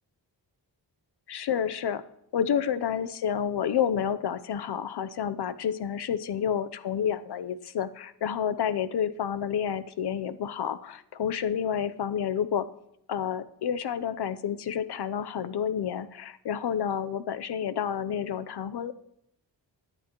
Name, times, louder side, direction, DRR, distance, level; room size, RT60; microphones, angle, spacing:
voice 1, 1.3-2.0 2.3-12.7 13.1-18.9, left 8 dB, 60° left, 12 dB, 0.7 m, -29 dB
22.5 x 9.9 x 3.0 m, 0.76 s
wide cardioid pair, 125°, 44 cm